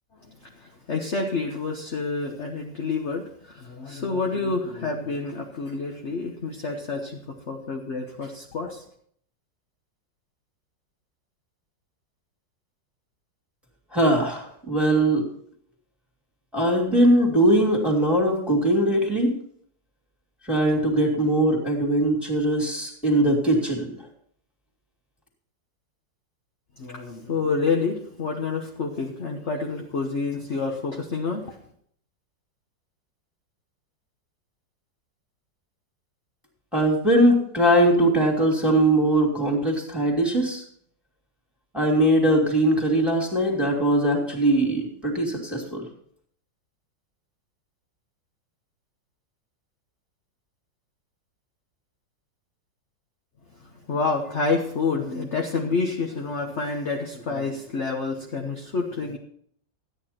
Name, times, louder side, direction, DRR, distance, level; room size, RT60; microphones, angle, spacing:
voice 1, 0.3-8.8 26.8-31.6 53.9-59.2, left 4 dB, 40° left, 1 dB, 1.3 m, -28 dB
voice 2, 13.9-15.2 16.5-19.3 20.4-24.0 36.7-40.6 41.7-45.9, right 1 dB, ahead, 0 dB, 2.8 m, -21 dB
13.5 x 9.4 x 4.4 m, 0.62 s
omnidirectional pair, 2.0 m